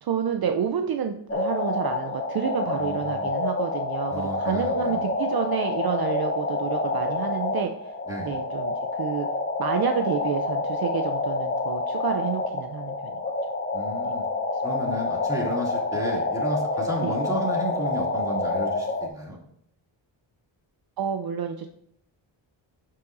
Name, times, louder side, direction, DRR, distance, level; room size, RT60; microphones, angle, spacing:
voice 1, 0.0-7.9 8.3-9.3 9.6-13.2 14.5-14.6 15.9-16.0 17.0-17.2 21.0-21.7, right 8 dB, 50° right, 6 dB, 0.6 m, -29 dB
sound 1, 1.3-19.1, left 3 dB, 25° left, 0.9 m, -28 dB
voice 2, 2.8-3.3 4.1-5.0 8.1-8.3 13.7-14.2 14.6-19.4, equal, 5° right, -3 dB, 2.5 m, -33 dB
9.5 x 5.7 x 2.6 m, 0.73 s
cardioid pair, 85°, 47 cm